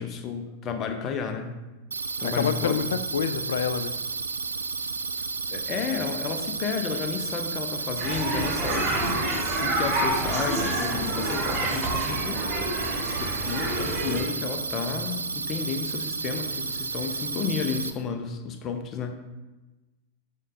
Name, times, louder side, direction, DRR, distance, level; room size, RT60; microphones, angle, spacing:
voice 1, 0.0-1.5 2.2-2.8 5.5-9.0 9.4-12.4 13.2-19.1, left 6 dB, 30° left, 6 dB, 0.7 m, -32 dB
sound 1, 1.9-17.9, right 4 dB, 75° right, 0.3 m, -32 dB
voice 2, 2.4-3.9, left 7 dB, 60° left, 12 dB, 0.3 m, -27 dB
sound 2, 8.0-14.2, right 1 dB, 25° right, 2.1 m, -28 dB
10.5 x 3.7 x 2.6 m, 1.1 s
figure-of-eight pair, 90°, 0 cm